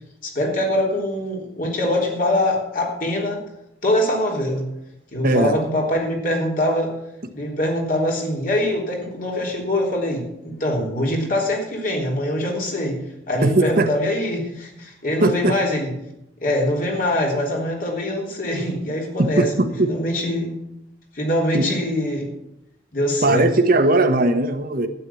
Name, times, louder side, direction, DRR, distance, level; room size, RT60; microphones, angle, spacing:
voice 1, 0.2-3.4 3.8-4.7 5.1-6.9 7.3-13.0 13.3-15.9 16.4-20.5 21.1-22.3 22.9-23.5, left 1 dB, 50° left, 0 dB, 3.5 m, -23 dB
voice 2, 5.2-5.6 13.4-13.9 15.2-15.5 19.2-19.9 21.5-21.7 23.2-24.9, right 2 dB, 50° right, 7 dB, 1.3 m, -18 dB
12.5 x 9.4 x 7.1 m, 0.85 s
head